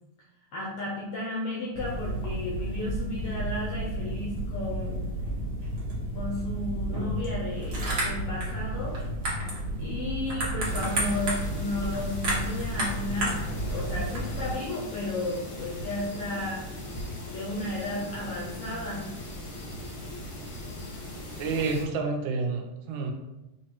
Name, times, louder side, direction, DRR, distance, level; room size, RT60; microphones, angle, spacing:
voice 1, 0.5-5.2 6.1-9.0 9.8-13.4 13.7-16.6 17.3-19.0, left 1 dB, 80° left, -3 dB, 1.3 m, -33 dB
sound 1, 1.7-14.5, right 1 dB, 55° right, 1.1 m, -31 dB
sound 2, 10.6-21.8, left 1 dB, 60° left, 0.9 m, -39 dB
voice 2, 21.4-23.1, right 4 dB, 85° right, 2 dB, 2.0 m, -29 dB
5.5 x 3.1 x 2.9 m, 1.0 s
omnidirectional pair, 3.4 m